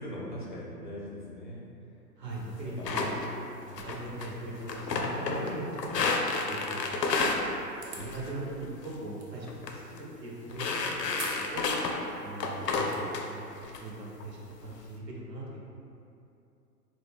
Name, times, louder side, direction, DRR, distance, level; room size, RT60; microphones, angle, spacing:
voice 1, 0.0-1.6 2.3-2.9 3.6-3.9, equal, 35° left, -6 dB, 0.4 m, -41 dB
voice 2, 2.2-3.2 3.7-7.5 7.9-11.6 12.2-15.6, right 2 dB, 80° right, -3 dB, 1.0 m, -40 dB
sound 1, 2.8-3.3 3.8-4.3 4.6-5.5 5.8-7.4 8.0-8.3 8.6-8.9 9.5-9.7 10.0-10.1 10.5-12.0 12.4-13.2 13.6-13.8 14.2-14.7, left 4 dB, 75° left, 0.6 m, -31 dB
sound 2, 7.7-8.2 9.2-9.3 11.1-11.5 11.8-11.9 12.6-13.0, right 4 dB, 45° right, 0.6 m, -42 dB
4.0 x 2.1 x 3.4 m, 2.7 s
figure-of-eight pair, 125°, 50 cm